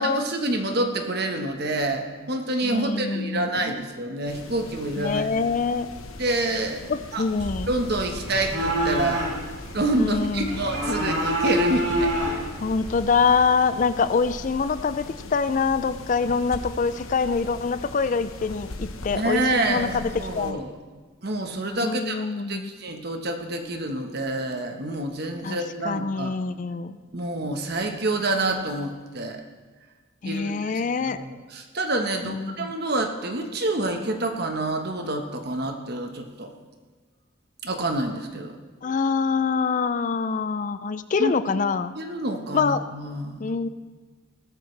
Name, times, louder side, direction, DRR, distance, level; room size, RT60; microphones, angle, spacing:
voice 1, 0.0-5.3 6.2-6.8 7.1-7.2 7.7-9.2 9.7-12.1 19.1-20.8 21.2-26.4 27.1-29.4 30.2-30.7 31.0-36.5 37.6-38.6 41.2-41.3 42.0-43.5, right 2 dB, 50° right, 4 dB, 1.3 m, -27 dB
voice 2, 2.6-3.7 5.0-5.9 6.9-7.7 10.0-10.6 12.6-15.0 15.3-20.6 21.8-22.7 25.4-27.0 30.2-31.2 32.2-32.7 38.8-41.9 42.5-42.8 43.4-43.7, left 5 dB, 40° left, 13 dB, 0.4 m, -25 dB
sound 1, 4.3-20.5, left 2 dB, 90° left, 1.1 m, -40 dB
sound 2, 7.4-13.4, equal, 90° right, 5.3 m, -28 dB
18.5 x 13.0 x 3.3 m, 1.4 s
head